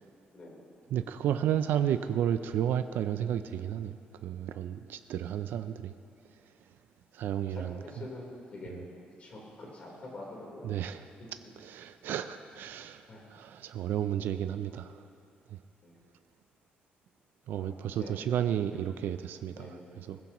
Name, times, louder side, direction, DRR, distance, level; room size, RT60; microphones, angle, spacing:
voice 1, 0.9-5.9 7.1-7.8 10.6-11.1 11.6-13.0 13.3-15.0 17.5-19.7 20.0-20.2, right 10 dB, 75° right, 10 dB, 0.4 m, -32 dB
voice 2, 7.6-8.9 9.2-10.7 13.1-13.3 14.7-14.8 15.8-16.0 17.6-18.1 18.7-18.9 19.5-20.1, left 2 dB, 40° left, -3 dB, 3.7 m, -46 dB
20.5 x 15.0 x 3.0 m, 2.5 s
cardioid pair, 150°, 3 cm